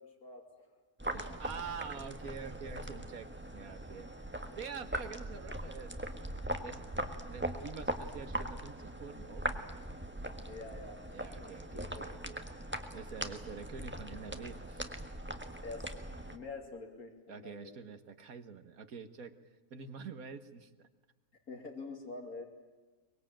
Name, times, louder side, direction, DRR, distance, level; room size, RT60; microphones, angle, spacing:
sound 1, 1.0-16.4, right 1 dB, 10° right, 1.4 m, -41 dB
voice 1, 1.1-4.1 4.6-5.9 6.6-6.9 7.2-9.5 11.1-12.4 12.9-14.9 17.3-19.4 19.7-20.9, right 6 dB, 70° right, 10 dB, 1.8 m, -46 dB
voice 2, 10.4-11.0 11.4-11.5 11.9-12.0 15.6-17.7 21.5-22.5, left 3 dB, 75° left, 1 dB, 3.5 m, -46 dB
24.0 x 21.5 x 8.8 m, 1.2 s
omnidirectional pair, 1.6 m